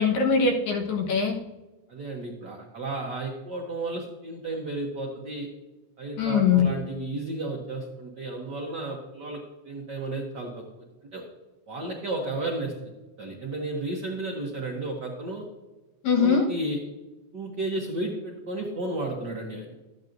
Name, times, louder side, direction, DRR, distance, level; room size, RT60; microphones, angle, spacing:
voice 1, 0.0-1.4 6.2-6.7 16.0-16.4, left 6 dB, 70° left, 2 dB, 2.5 m, -22 dB
voice 2, 1.9-5.5 6.0-10.6 11.1-11.2 11.7-12.9 13.2-15.5 16.1-16.8 17.3-19.7, right 2 dB, 85° right, -1 dB, 0.9 m, -33 dB
12.0 x 8.9 x 2.6 m, 1.1 s
omnidirectional pair, 3.5 m